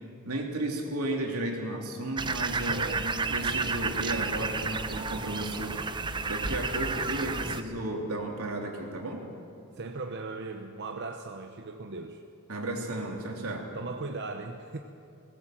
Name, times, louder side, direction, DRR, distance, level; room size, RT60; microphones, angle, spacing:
voice 1, 0.2-9.2 12.5-13.7, right 1 dB, 80° right, 1 dB, 3.2 m, -34 dB
sound 1, 2.2-7.6, right 4 dB, 20° right, 0.6 m, -31 dB
voice 2, 2.7-3.1 9.7-12.2 13.7-14.8, right 3 dB, 50° right, 4 dB, 0.9 m, -38 dB
20.0 x 17.5 x 7.6 m, 2.6 s
head